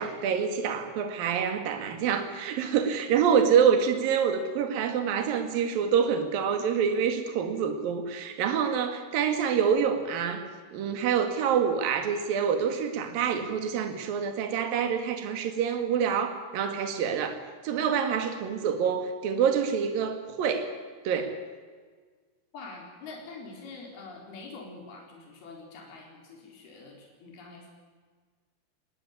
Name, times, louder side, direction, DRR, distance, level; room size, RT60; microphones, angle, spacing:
voice 1, 0.0-10.4 10.7-17.4 17.6-20.7 21.1-21.4, right 7 dB, 65° right, 6 dB, 3.7 m, -26 dB
voice 2, 22.5-27.7, left 3 dB, 70° left, 0 dB, 6.1 m, -45 dB
21.0 x 19.5 x 9.6 m, 1.5 s
omnidirectional pair, 4.5 m